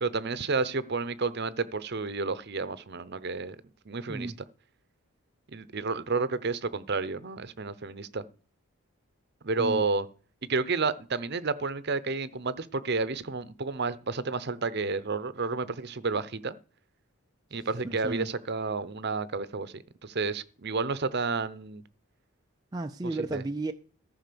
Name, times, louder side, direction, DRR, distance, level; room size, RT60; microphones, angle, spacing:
voice 1, 0.0-3.6 3.9-4.3 5.5-8.2 9.4-10.1 10.4-16.6 17.5-21.8 23.3-23.4, right 4 dB, 45° right, 0.7 m, -31 dB
voice 2, 17.8-18.3 22.7-23.7, right 2 dB, 15° right, 0.4 m, -33 dB
14.0 x 5.0 x 6.9 m
head